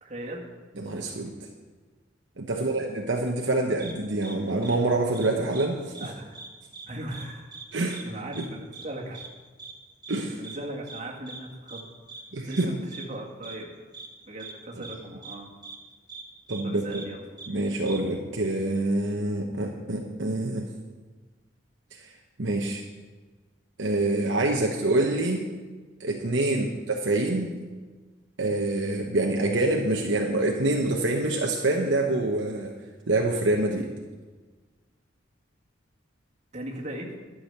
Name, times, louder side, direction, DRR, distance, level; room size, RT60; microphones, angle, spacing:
voice 1, 0.0-0.4 2.5-2.9 6.0-6.3 6.9-7.5 8.0-9.2 10.2-11.9 12.5-12.8 13.1-13.7 14.3-15.5 16.6-17.2 26.5-26.7 36.5-37.1, right 1 dB, 35° right, -2 dB, 1.9 m, -38 dB
voice 2, 0.8-1.3 2.4-6.1 7.7-8.0 8.4-8.5 10.1-10.3 12.3-12.7 16.5-16.8 17.5-20.7 21.9-22.1 22.4-22.8 23.8-25.5 26.0-26.6 27.0-27.6 28.4-32.7 33.1-33.9, right 2 dB, 60° right, 0 dB, 1.0 m, -26 dB
sound 1, 3.8-3.9 4.2-4.3 4.6-4.7 5.1-5.7 5.9-6.1 6.3-6.9 7.1-7.2 7.5-7.6 7.9-8.0 8.3-8.5 8.7-8.9 9.1-9.3 9.6-9.7 10.0-10.2 10.4-10.6 10.9-11.0 11.3-11.4 11.7-11.8 12.1-12.2 12.5-12.6 12.9-13.0 13.4-13.6 13.9-14.1 14.4-14.5 14.8-14.9 15.2-15.4 15.6-15.8 16.1-16.2 16.5-16.6 16.9-17.0 17.4-17.5 17.8-18.0, right 4 dB, 20° right, 1.1 m, -41 dB
11.5 x 6.3 x 7.9 m, 1.4 s
head